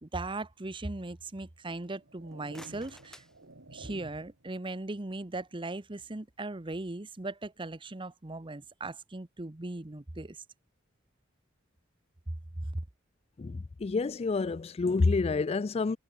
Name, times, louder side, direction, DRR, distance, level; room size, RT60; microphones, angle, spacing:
voice 1, 0.0-3.2 3.7-10.4 12.6-12.7, right 2 dB, 25° right, 1.0 m, -38 dB
sound 1, 1.8-4.5, right 2 dB, 75° right, 2.8 m, -51 dB
sound 2, 2.2-4.2, left 1 dB, 5° left, 3.2 m, -55 dB
voice 2, 13.4-16.0, left 3 dB, 30° left, 0.4 m, -28 dB
head